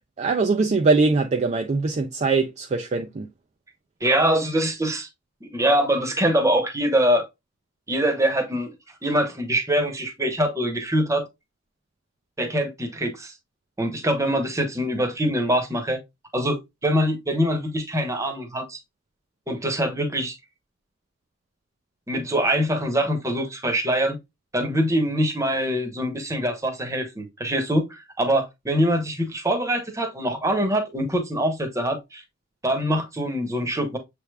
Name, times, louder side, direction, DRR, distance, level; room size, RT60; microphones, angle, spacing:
voice 1, 0.2-3.3, right 3 dB, 35° right, 0.3 m, -22 dB
voice 2, 4.0-5.1 5.4-7.3 7.9-8.7 9.0-11.3 12.4-13.3 13.8-16.0 16.3-18.8 19.5-20.4 22.1-24.2 24.5-32.2 32.6-34.0, equal, 15° right, 0.9 m, -24 dB
6.8 x 3.3 x 2.2 m
head